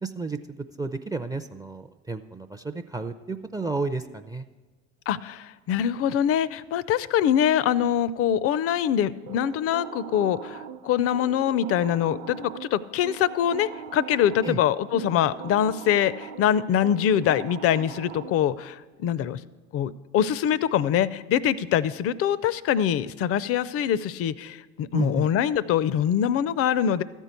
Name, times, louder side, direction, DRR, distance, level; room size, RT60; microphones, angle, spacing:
voice 1, 0.0-4.5 14.4-14.6 24.9-25.3, right 3 dB, 10° right, 9 dB, 0.5 m, -32 dB
voice 2, 5.1-19.4 19.7-27.0, left 9 dB, 45° left, 19 dB, 0.5 m, -24 dB
sound 1, 9.3-18.7, right 8 dB, 55° right, 0.9 m, -41 dB
13.5 x 4.5 x 8.2 m, 1.3 s
hypercardioid pair, 65°, 33 cm